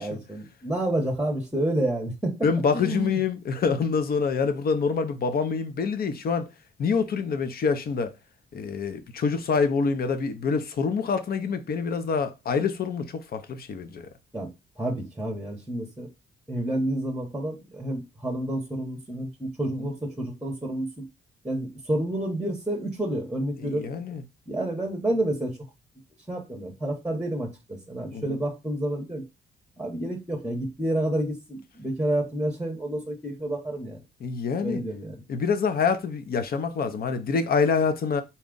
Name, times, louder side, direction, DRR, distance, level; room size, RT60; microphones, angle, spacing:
voice 1, 0.0-3.2 14.3-14.5 14.8-16.1 16.5-21.1 21.4-23.9 24.5-25.6 26.3-29.2 29.8-34.0 34.6-35.2, right 1 dB, 5° right, 0.9 m, -29 dB
voice 2, 2.4-6.5 6.8-8.1 8.5-14.1 23.6-24.2 28.1-28.4 34.2-34.8 35.3-38.2, left 5 dB, 50° left, 0.7 m, -26 dB
4.1 x 2.3 x 3.8 m
cardioid pair, 90°, 20 cm